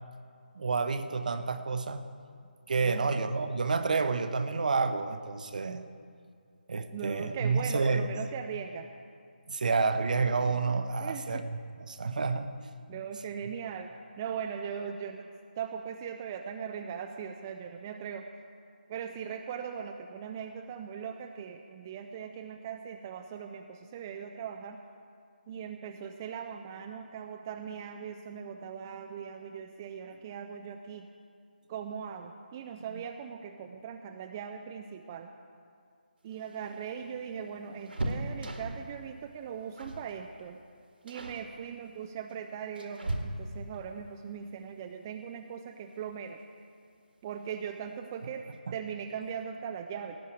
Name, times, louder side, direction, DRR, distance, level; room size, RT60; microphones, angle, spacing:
voice 1, 0.5-2.0 2.7-5.8 6.7-8.1 9.5-11.4 11.9-12.5, right 4 dB, 50° right, 10 dB, 0.8 m, -29 dB
voice 2, 2.8-3.3 6.9-8.9 11.0-11.5 12.9-18.3 18.9-24.8 25.5-31.1 31.7-35.3 36.2-40.6 41.0-46.4 47.2-50.2, right 7 dB, 20° right, 5 dB, 0.4 m, -40 dB
sound 1, 36.3-39.0 39.8-40.1 40.4-40.7 41.1-41.5 42.3-43.8 45.5-45.6 46.0-46.1 47.2-47.7 48.0-48.1 48.4-48.6, right 1 dB, 75° right, 1.8 m, -37 dB
18.0 x 6.4 x 8.5 m, 2.3 s
figure-of-eight pair, 155°, 5 cm